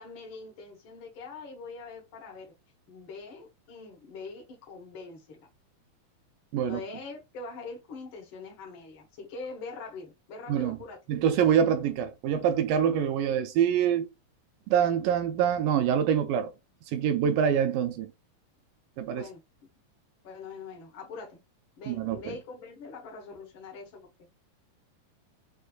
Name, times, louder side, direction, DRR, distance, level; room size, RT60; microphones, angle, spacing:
voice 1, 0.0-2.5 2.9-5.5 6.6-11.0 19.1-19.4 20.2-21.4 21.8-24.5, left 4 dB, 75° left, 1.1 m, -43 dB
voice 2, 11.1-14.1 14.7-16.5 16.9-18.1 19.0-19.2 21.9-22.2, right 8 dB, 80° right, 2.0 m, -25 dB
6.3 x 2.6 x 2.3 m
omnidirectional pair, 4.2 m